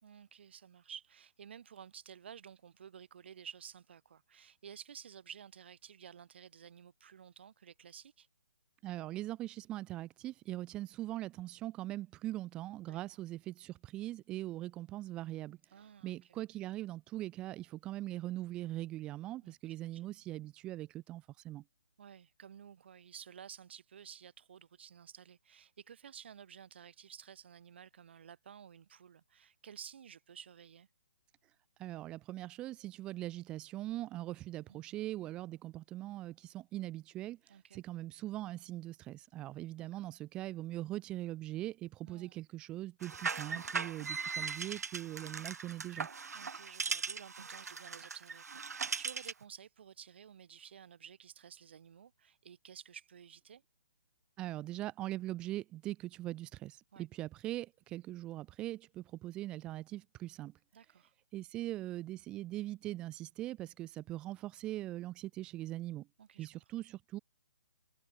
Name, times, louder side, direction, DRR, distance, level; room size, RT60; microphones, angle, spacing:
voice 1, 0.0-8.3 12.9-13.0 15.7-16.4 19.4-19.6 19.9-20.0 22.0-30.9 34.7-34.8 37.5-37.8 39.8-40.0 42.0-42.4 46.3-53.6 56.9-57.0 60.7-61.1 66.2-66.5, right 8 dB, 40° right, 3.2 m, -53 dB
voice 2, 8.8-15.6 16.0-21.6 31.8-46.1 54.4-60.5 61.3-66.1 66.4-67.2, right 15 dB, 10° right, 1.2 m, -41 dB
sound 1, 43.0-49.4, right 5 dB, 75° right, 2.9 m, -39 dB
hypercardioid pair, 175°, 9 cm